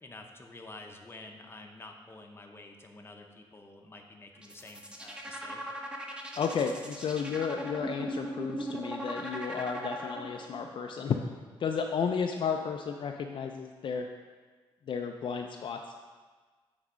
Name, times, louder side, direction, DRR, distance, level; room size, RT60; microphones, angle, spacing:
voice 1, 0.0-5.6, left 2 dB, 25° left, 2 dB, 0.8 m, -49 dB
sound 1, 4.4-10.6, equal, 10° right, 0.8 m, -39 dB
voice 2, 6.4-11.2 11.6-14.1 14.9-15.8, left 6 dB, 55° left, 3 dB, 0.4 m, -32 dB
7.9 x 3.5 x 5.0 m, 1.4 s
cardioid pair, 95°, 10 cm